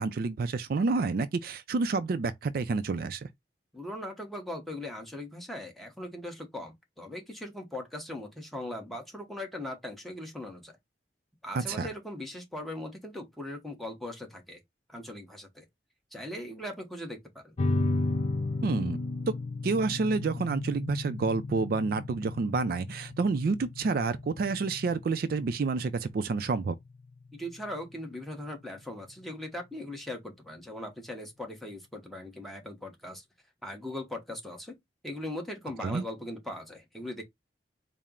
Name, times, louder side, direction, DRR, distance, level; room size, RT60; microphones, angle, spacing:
voice 1, 0.0-3.3 11.5-11.9 18.6-19.0 19.6-26.7 35.8-36.0, right 4 dB, 55° right, 0.4 m, -29 dB
voice 2, 3.7-10.7 11.4-14.6 14.9-15.7 16.1-17.6 27.3-33.2 33.6-34.8 35.0-37.2, left 1 dB, ahead, 0.9 m, -39 dB
sound 1, 17.6-28.6, left 2 dB, 35° left, 0.4 m, -34 dB
4.2 x 2.0 x 3.6 m
head